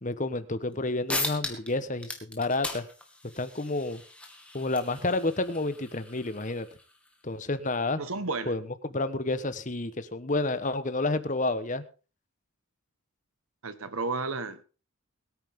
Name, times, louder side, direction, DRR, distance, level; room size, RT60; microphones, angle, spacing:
voice 1, 0.0-2.8 3.4-4.0 4.5-6.7 7.2-8.0 8.5-8.6 8.9-11.8, left 2 dB, 35° left, 1.1 m, -30 dB
sound 1, 0.7-0.8 1.1-1.7 2.0-7.1, left 2 dB, 5° left, 2.2 m, -38 dB
voice 2, 8.0-8.5 13.6-14.6, right 3 dB, 75° right, 1.4 m, -32 dB
22.5 x 9.4 x 3.7 m
head